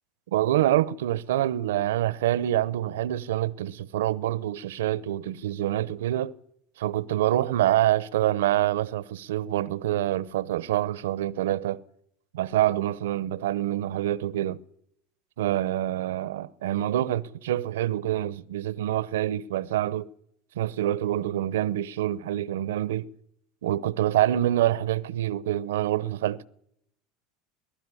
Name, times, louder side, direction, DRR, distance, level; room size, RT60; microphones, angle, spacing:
voice 1, 0.3-6.3 6.8-11.8 12.3-14.6 15.4-20.1 20.6-23.1 23.6-26.5, right 13 dB, 80° right, 0.7 m, -26 dB
22.0 x 13.5 x 9.8 m
hypercardioid pair, 90°, 0 cm